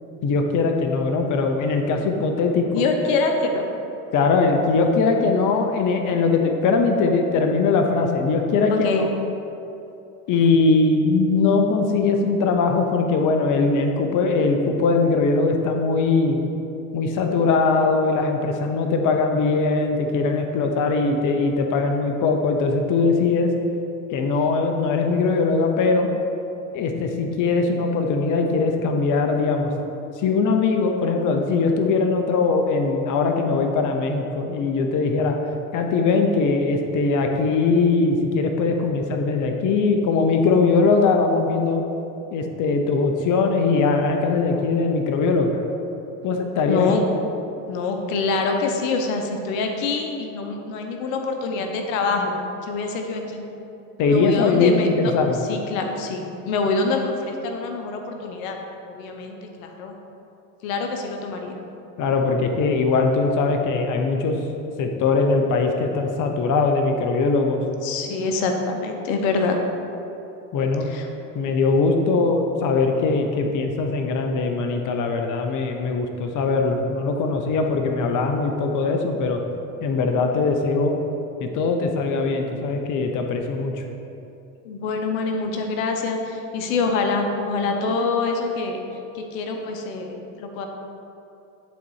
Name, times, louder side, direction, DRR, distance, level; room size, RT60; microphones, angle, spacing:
voice 1, 0.2-2.6 4.1-9.1 10.3-16.4 16.9-23.5 24.1-26.1 26.7-29.7 30.2-35.4 35.7-41.8 42.3-45.6 46.2-46.9 54.0-55.4 62.0-64.4 64.8-67.6 70.5-70.9 71.3-79.4 79.8-81.0 81.4-83.7, left 4 dB, 50° left, 4 dB, 0.9 m, -21 dB
voice 2, 2.7-3.7 8.7-9.1 46.7-47.1 47.7-52.3 52.6-53.4 54.1-55.1 55.4-58.6 58.9-59.9 60.6-61.6 67.8-69.6 70.8-71.1 84.6-88.8 89.1-90.7, left 3 dB, 80° left, 4 dB, 1.0 m, -25 dB
10.5 x 4.1 x 4.8 m, 2.8 s
supercardioid pair, 95°, 39 cm